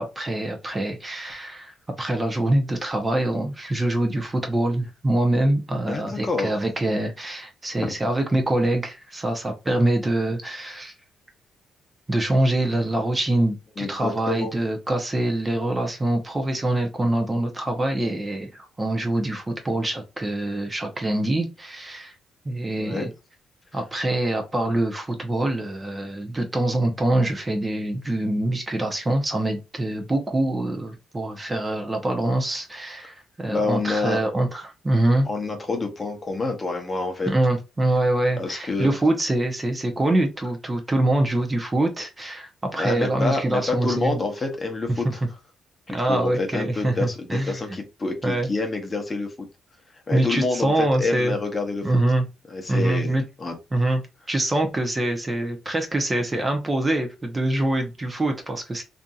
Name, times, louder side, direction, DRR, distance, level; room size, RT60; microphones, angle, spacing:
voice 1, 0.0-10.9 12.1-22.1 22.4-23.1 23.7-35.3 37.3-44.2 44.9-45.1 45.9-47.6 48.2-48.5 50.1-51.4 51.8-52.2 52.7-53.2 53.7-54.0 54.3-58.8, right 1 dB, 20° right, 0.6 m, -24 dB
voice 2, 5.9-6.6 7.8-7.9 13.8-14.5 22.8-23.1 33.5-34.2 35.3-37.3 38.4-39.0 42.8-45.2 45.9-49.5 50.1-51.9 52.5-53.1 53.4-53.5, left 3 dB, 30° left, 0.8 m, -27 dB
2.6 x 2.6 x 2.3 m
cardioid pair, 90°, 0 cm